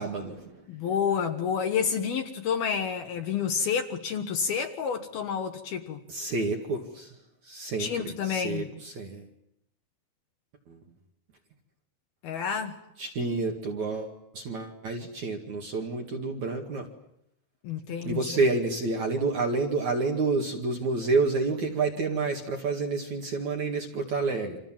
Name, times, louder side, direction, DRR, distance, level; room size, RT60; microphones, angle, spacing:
voice 1, 0.0-0.6 6.1-7.1 7.4-9.3 10.7-10.8 13.0-16.9 18.0-24.6, right 3 dB, 50° right, 2.6 m, -29 dB
voice 2, 0.7-6.0 7.8-8.7 12.2-12.8 17.6-18.4, left 7 dB, 65° left, 2.8 m, -29 dB
30.0 x 26.5 x 7.5 m
omnidirectional pair, 5.6 m